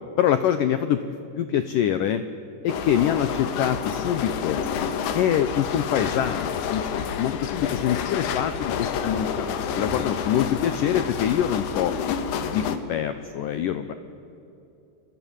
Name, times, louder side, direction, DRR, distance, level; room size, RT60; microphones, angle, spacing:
voice 1, 0.2-2.2 2.6-4.6 5.1-9.5 9.7-12.0 12.3-14.0, left 10 dB, 90° left, 10 dB, 1.9 m, -25 dB
sound 1, 2.7-12.8, left 7 dB, 70° left, 3.4 m, -29 dB
29.0 x 22.5 x 9.0 m, 2.9 s
omnidirectional pair, 5.0 m